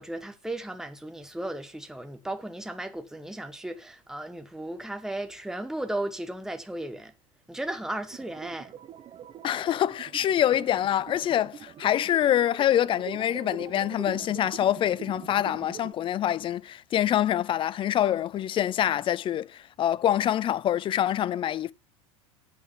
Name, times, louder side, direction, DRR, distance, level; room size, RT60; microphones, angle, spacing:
voice 1, 0.0-7.1 7.5-8.7, right 1 dB, 5° right, 1.1 m, -35 dB
sound 1, 8.1-15.9, right 9 dB, 30° right, 0.7 m, -44 dB
voice 2, 9.4-21.7, left 11 dB, 30° left, 0.4 m, -25 dB
8.3 x 4.5 x 6.8 m
hypercardioid pair, 85°, 18 cm